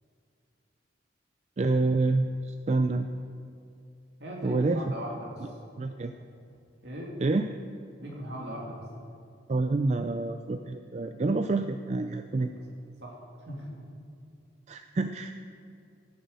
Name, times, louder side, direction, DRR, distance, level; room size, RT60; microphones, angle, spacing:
voice 1, 1.6-3.1 4.4-4.8 5.8-6.1 7.2-7.5 9.5-12.5 14.7-15.3, right 3 dB, 35° right, 8 dB, 0.4 m, -27 dB
voice 2, 4.2-5.5 6.8-7.1 8.0-8.8 12.5-12.7 13.0-13.1 13.4-13.7, equal, 65° right, -2 dB, 2.7 m, -38 dB
15.0 x 7.6 x 6.8 m, 2.5 s
head